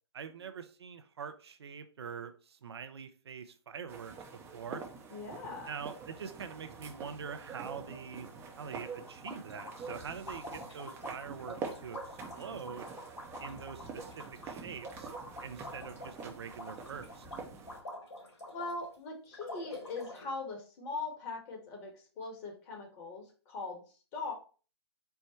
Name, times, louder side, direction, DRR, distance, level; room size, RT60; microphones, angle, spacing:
voice 1, 0.1-4.1 4.5-4.8 5.7-8.3 8.6-12.9 13.4-15.1 15.4-17.3, right 6 dB, 65° right, 8 dB, 0.5 m, -44 dB
sound 1, 3.9-17.8, right 5 dB, 15° right, 0.6 m, -46 dB
voice 2, 5.1-5.7 18.5-23.8 24.1-24.3, left 3 dB, 25° left, 1 dB, 1.3 m, -41 dB
sound 2, 9.1-18.9 19.3-20.3, left 1 dB, 70° left, 2.2 m, -47 dB
4.5 x 2.1 x 4.2 m, 0.37 s
figure-of-eight pair, 130°, 15 cm